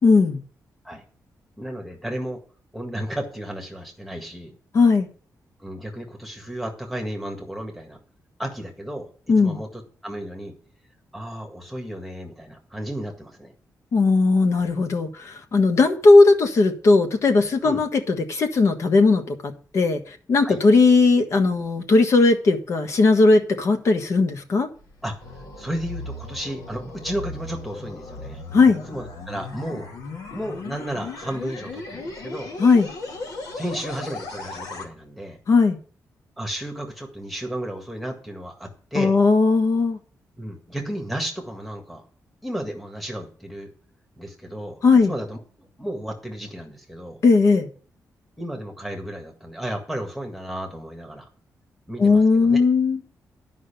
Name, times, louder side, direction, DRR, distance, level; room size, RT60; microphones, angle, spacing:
voice 1, 0.0-0.4 4.7-5.1 9.3-9.6 13.9-20.0 20.3-24.7 28.5-28.8 32.6-32.9 35.5-35.8 38.9-40.0 44.8-45.1 47.2-47.7 52.0-53.0, left 3 dB, 50° left, 1.4 m, -17 dB
voice 2, 1.6-2.4 2.7-4.5 5.6-8.0 8.4-9.1 9.4-10.5 11.1-13.5 17.6-17.8 20.4-20.6 25.0-25.1 25.6-28.4 28.9-29.9 30.3-32.5 33.5-35.4 36.4-39.2 40.4-42.0 42.4-43.7 44.2-47.2 48.4-51.3 51.9-52.6, right 1 dB, ahead, 1.7 m, -33 dB
sound 1, 24.8-34.9, left 3 dB, 80° left, 2.6 m, -37 dB
11.0 x 5.5 x 6.8 m
wide cardioid pair, 175°, 6 cm